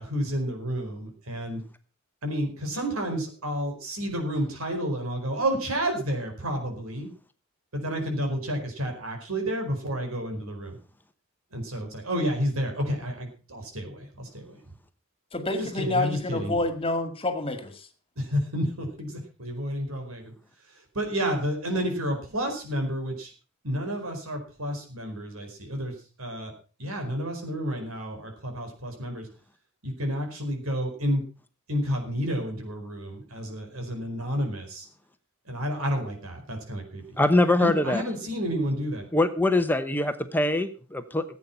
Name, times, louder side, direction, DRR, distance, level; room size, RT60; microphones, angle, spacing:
voice 1, 0.0-1.6 2.2-7.1 7.7-10.8 11.5-14.6 15.5-16.5 18.2-20.3 20.9-23.3 23.6-26.5 26.8-29.3 29.8-31.2 31.7-34.9 35.5-37.0 37.6-39.1, equal, 90° right, 4.7 m, -30 dB
voice 2, 15.3-17.9, left 2 dB, 25° left, 2.0 m, -28 dB
voice 3, 37.2-38.0 39.1-41.2, left 2 dB, 10° left, 0.9 m, -23 dB
16.0 x 8.5 x 5.7 m
head